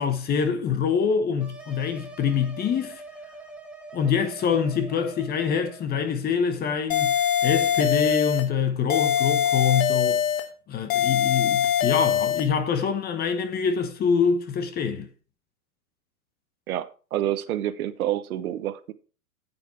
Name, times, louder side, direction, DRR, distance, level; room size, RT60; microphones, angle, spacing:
voice 1, 0.0-3.0 3.9-7.1 7.4-10.2 10.7-15.1, left 6 dB, 20° left, 1.1 m, -25 dB
sound 1, 1.4-5.9, right 2 dB, ahead, 1.7 m, -44 dB
sound 2, 6.9-8.5 8.9-10.5 10.9-12.5, left 9 dB, 55° left, 1.4 m, -23 dB
voice 2, 16.7-18.9, right 12 dB, 65° right, 1.1 m, -28 dB
8.8 x 8.3 x 4.3 m
hypercardioid pair, 120°, 47 cm